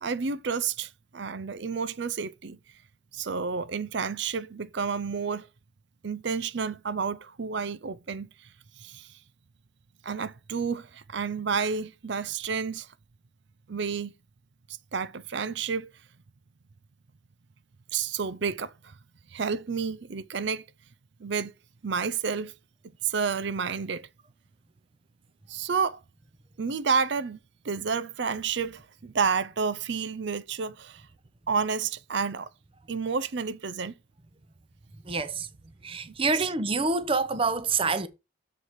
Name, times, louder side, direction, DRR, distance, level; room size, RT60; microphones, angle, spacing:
voice 1, 0.0-2.6 3.1-5.5 6.0-8.3 8.8-9.1 10.0-12.9 13.7-14.1 14.7-15.9 17.9-18.9 19.3-20.6 21.2-21.5 21.8-22.5 22.8-24.1 25.5-26.0 26.6-27.4 27.6-31.0 31.5-32.5 32.9-34.0 36.1-36.2, right 5 dB, 60° right, 0.5 m, -30 dB
voice 2, 35.0-35.5 35.8-38.1, right 4 dB, 25° right, 0.8 m, -27 dB
7.3 x 4.7 x 6.4 m
head